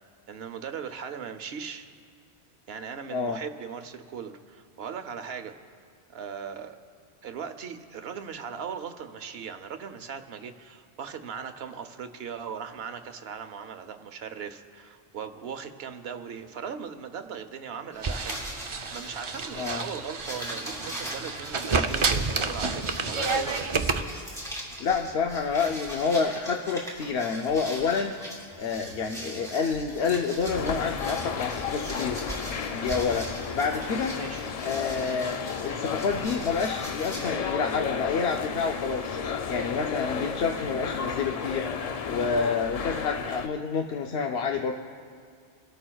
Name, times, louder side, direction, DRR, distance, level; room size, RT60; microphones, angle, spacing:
voice 1, 0.3-1.9 2.7-5.5 6.1-6.8 7.2-23.7 34.1-34.4, right 7 dB, 70° right, 8 dB, 1.0 m, -39 dB
sound 1, 17.9-37.3, right 1 dB, 5° left, 2.9 m, -40 dB
sound 2, 18.0-24.0, right 4 dB, 40° right, 0.4 m, -29 dB
voice 2, 24.8-28.1 28.6-32.2 32.7-33.3 33.5-34.1 34.6-39.2 39.5-41.7 42.1-44.7, left 5 dB, 70° left, 2 dB, 0.9 m, -28 dB
sound 3, 30.5-43.5, left 6 dB, 55° left, 0.4 m, -33 dB
25.0 x 13.0 x 2.3 m, 2.1 s
omnidirectional pair, 1.1 m